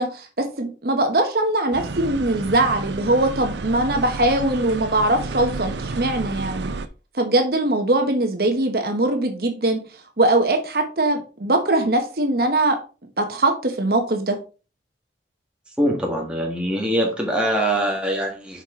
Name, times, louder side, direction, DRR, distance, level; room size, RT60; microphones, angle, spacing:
voice 1, 0.0-6.7 7.1-9.8 10.2-12.8 13.2-14.4, right 2 dB, 55° right, 1.1 m, -21 dB
sound 1, 1.7-6.9, right 3 dB, 75° right, 0.6 m, -31 dB
voice 2, 15.8-18.6, right 1 dB, 5° right, 1.6 m, -23 dB
7.4 x 4.9 x 3.7 m
head